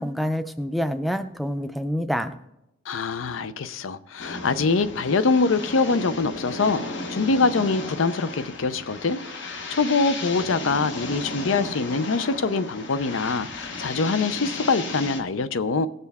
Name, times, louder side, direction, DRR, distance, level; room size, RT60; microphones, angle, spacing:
voice 1, 0.0-2.3, equal, ahead, 0.4 m, -27 dB
voice 2, 2.9-9.2 9.7-15.9, left 4 dB, 80° left, 0.5 m, -24 dB
sound 1, 4.2-15.2, left 3 dB, 60° left, 1.0 m, -34 dB
18.0 x 6.7 x 3.5 m
head